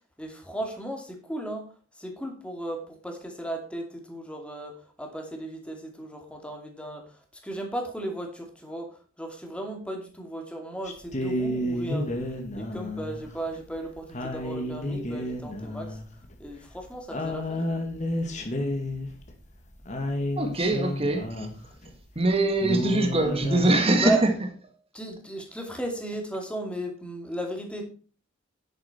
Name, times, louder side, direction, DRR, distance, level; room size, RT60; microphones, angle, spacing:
voice 1, 0.2-1.7 1.9-12.1 12.5-16.0 16.4-17.6 24.0-24.2 24.9-27.8, right 1 dB, 5° left, 2.6 m, -35 dB
Stille Nacht - I try to sing, 10.9-21.9 22.3-22.4 22.6-23.7, left 1 dB, 35° left, 1.9 m, -31 dB
voice 2, 20.4-21.5 22.1-24.3, right 2 dB, 30° right, 1.7 m, -23 dB
10.5 x 8.9 x 4.4 m
head